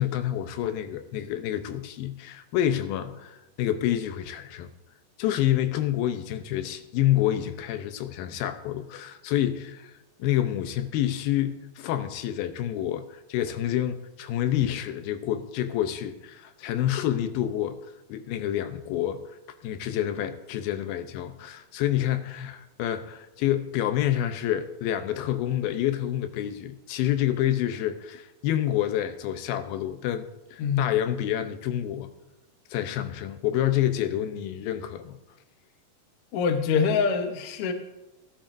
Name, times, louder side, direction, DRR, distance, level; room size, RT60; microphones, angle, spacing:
voice 1, 0.0-4.7 5.2-9.9 10.2-17.8 18.1-19.2 19.6-32.1 32.7-35.2, left 12 dB, 90° left, 9 dB, 2.7 m, -28 dB
voice 2, 30.6-30.9 36.3-37.7, left 6 dB, 70° left, 6 dB, 1.4 m, -24 dB
19.5 x 12.0 x 2.6 m, 1.0 s
omnidirectional pair, 4.1 m